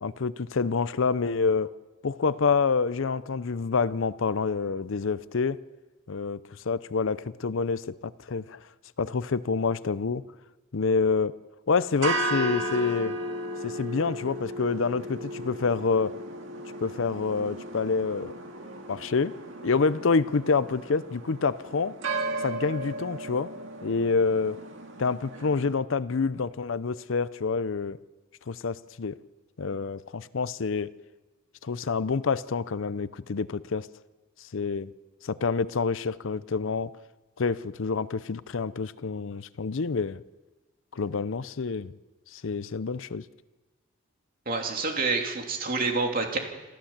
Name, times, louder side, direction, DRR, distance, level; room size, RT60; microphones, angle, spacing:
voice 1, 0.0-1.7 2.0-5.6 6.1-6.4 6.7-7.9 8.3-8.6 9.0-10.2 10.7-11.3 11.7-13.2 13.6-16.1 16.8-18.3 18.9-19.3 19.6-22.0 22.4-23.5 23.8-24.6 25.0-28.0 28.5-29.1 29.6-30.9 31.6-33.9 34.5-34.9 35.2-36.9 37.4-40.2 41.0-41.9 42.3-43.2, left 4 dB, 65° left, 16 dB, 0.6 m, -27 dB
sound 1, 11.9-25.7, right 1 dB, 65° right, 2.2 m, -35 dB
voice 2, 44.5-46.4, right 3 dB, 40° right, 2 dB, 3.0 m, -27 dB
27.5 x 14.5 x 7.3 m, 1.2 s
head